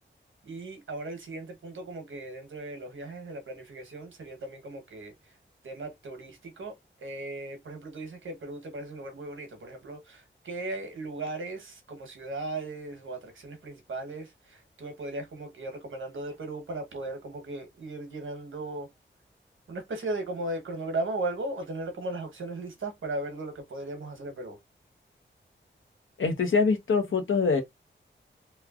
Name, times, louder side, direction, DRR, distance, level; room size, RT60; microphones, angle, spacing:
voice 1, 0.4-5.3 5.6-18.9 19.7-24.6, right 2 dB, 85° right, 1.0 m, -37 dB
voice 2, 26.2-27.6, left 4 dB, 80° left, 0.8 m, -24 dB
3.1 x 2.3 x 2.4 m
wide cardioid pair, 90°, 20 cm